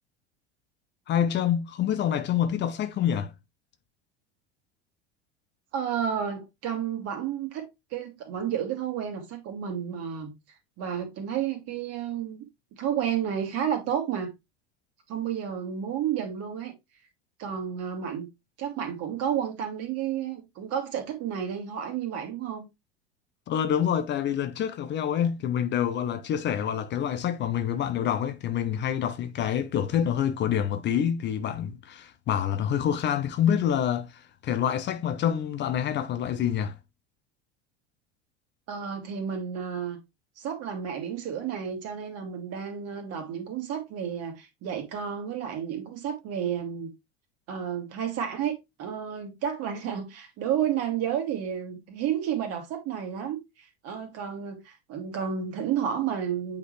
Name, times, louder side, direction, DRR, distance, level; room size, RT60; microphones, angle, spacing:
voice 1, 1.1-3.3 23.5-36.7, left 9 dB, 35° left, 0.7 m, -27 dB
voice 2, 5.7-7.7 7.9-10.3 10.8-12.4 12.8-14.3 15.1-16.7 17.4-18.3 18.6-22.7 38.7-40.0 40.4-46.9 47.5-56.6, right 8 dB, 45° right, 2.2 m, -31 dB
8.7 x 3.9 x 3.2 m
figure-of-eight pair, 75°, 33 cm